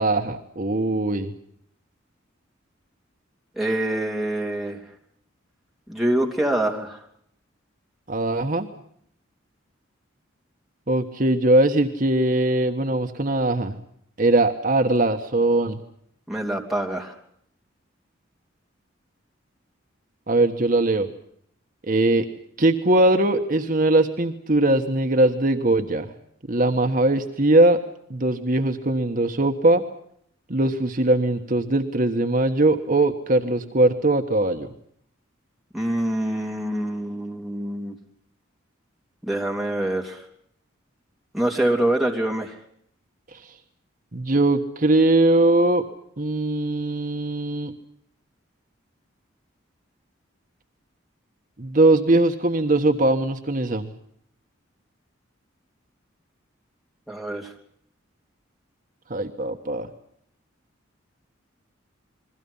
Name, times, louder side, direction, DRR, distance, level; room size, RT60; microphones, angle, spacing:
voice 1, 0.0-1.3 8.1-8.7 10.9-13.8 14.2-15.8 20.3-21.1 21.8-22.2 22.6-26.1 26.5-27.8 28.1-29.8 30.5-34.7 43.3-43.5 44.1-45.8 46.2-47.7 51.6-53.9 59.1-59.9, right 2 dB, 45° right, 5 dB, 1.4 m, -21 dB
voice 2, 3.6-4.8 5.9-7.0 16.3-17.1 35.7-37.9 39.2-40.2 41.3-42.5 57.1-57.5, right 1 dB, ahead, 0 dB, 3.3 m, -25 dB
29.5 x 22.0 x 5.6 m, 0.68 s
head